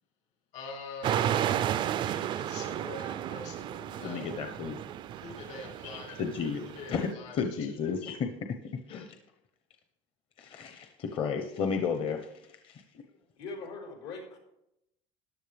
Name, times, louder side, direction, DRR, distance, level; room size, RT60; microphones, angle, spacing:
voice 1, 0.5-4.4 5.1-6.2 6.6-7.4 8.0-8.2, left 4 dB, 55° left, 0 dB, 2.4 m, -44 dB
sound 1, 1.0-7.1, right 11 dB, 35° right, 0.3 m, -33 dB
voice 2, 4.0-4.8 6.2-6.6 6.9-8.3 8.9-9.2 10.4-12.3 12.6-12.8, left 6 dB, 40° left, 5 dB, 0.9 m, -32 dB
voice 3, 13.4-14.4, left 3 dB, 90° left, -1 dB, 4.6 m, -41 dB
14.0 x 10.5 x 3.4 m, 0.83 s
cardioid pair, 150°, 14 cm